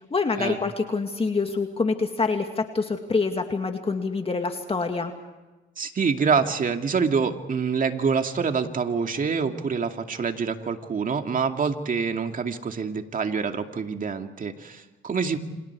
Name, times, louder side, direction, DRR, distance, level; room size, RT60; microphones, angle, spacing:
voice 1, 0.1-5.1, left 4 dB, 30° left, 5 dB, 2.3 m, -26 dB
voice 2, 5.8-15.4, right 5 dB, 45° right, 5 dB, 2.4 m, -26 dB
29.0 x 27.0 x 4.8 m, 1.1 s
cardioid pair, 90°, 20 cm